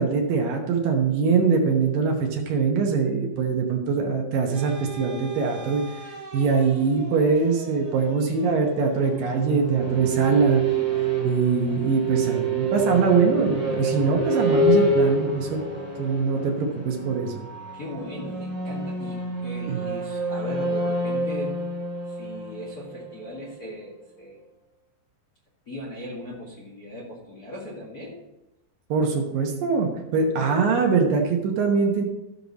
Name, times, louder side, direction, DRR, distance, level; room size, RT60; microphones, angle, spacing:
voice 1, 0.0-10.6 11.0-15.6 16.0-17.4 19.7-19.8 28.9-32.0, right 5 dB, 70° right, 2 dB, 2.5 m, -23 dB
sound 1, 4.5-19.1, right 3 dB, 45° right, 2.1 m, -44 dB
sound 2, 8.8-23.5, right 2 dB, 10° left, 0.6 m, -27 dB
voice 2, 17.7-21.6 22.0-24.4 25.6-28.2, equal, 35° left, -5 dB, 1.7 m, -38 dB
14.0 x 6.6 x 4.0 m, 0.98 s
omnidirectional pair, 4.5 m